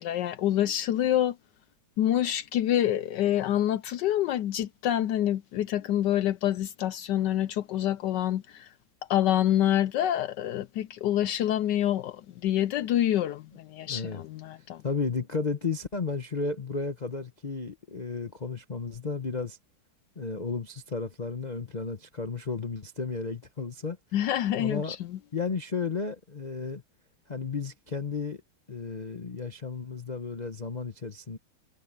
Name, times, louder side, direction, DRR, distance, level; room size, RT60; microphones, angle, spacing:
voice 1, 0.0-1.4 2.0-8.7 9.1-14.8 24.1-25.2, left 12 dB, 75° left, 1.1 m, -27 dB
voice 2, 13.8-14.2 14.6-19.6 20.2-24.0 24.6-25.0 25.3-26.8 27.3-28.4 28.7-31.4, left 4 dB, 35° left, 0.7 m, -33 dB
omnidirectional pair, 2.2 m